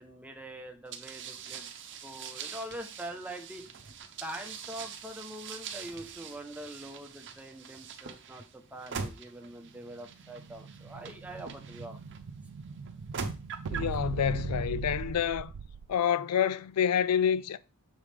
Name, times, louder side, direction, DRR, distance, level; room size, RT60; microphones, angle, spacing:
voice 1, 0.0-3.6 4.2-12.0, right 1 dB, 5° right, 0.9 m, -44 dB
sound 1, 0.9-12.2 12.8-14.0, right 6 dB, 55° right, 0.8 m, -43 dB
Explosion, 9.9-16.0, right 6 dB, 80° right, 0.4 m, -40 dB
voice 2, 13.7-15.5 15.9-17.6, left 8 dB, 80° left, 0.4 m, -28 dB
7.1 x 4.8 x 3.4 m
head